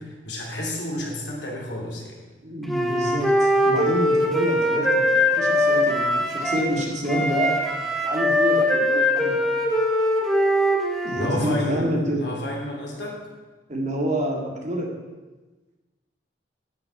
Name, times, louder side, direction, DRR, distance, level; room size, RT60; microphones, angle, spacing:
voice 1, 0.0-2.2 11.1-13.2, left 1 dB, 80° left, -1 dB, 3.0 m, -30 dB
voice 2, 2.4-9.5 11.0-12.3 13.7-15.0, equal, 45° right, 0 dB, 2.1 m, -28 dB
Wind instrument woodwind instrument, 2.7-6.7 7.0-11.3, left 1 dB, ahead, 1.6 m, -21 dB
10.0 x 6.1 x 8.2 m, 1.2 s
head